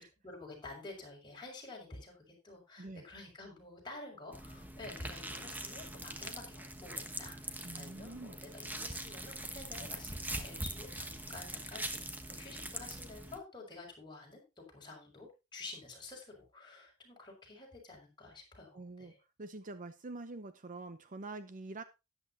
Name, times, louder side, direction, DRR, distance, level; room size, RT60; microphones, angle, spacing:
voice 1, 0.0-12.0 12.3-19.2, left 2 dB, 20° left, -1 dB, 5.4 m, -50 dB
sound 1, 4.3-13.4, right 1 dB, 10° right, 1.1 m, -43 dB
voice 2, 7.6-8.4 18.7-19.1 19.4-21.8, right 2 dB, 40° right, 11 dB, 0.7 m, -45 dB
13.0 x 10.5 x 2.8 m, 0.26 s
head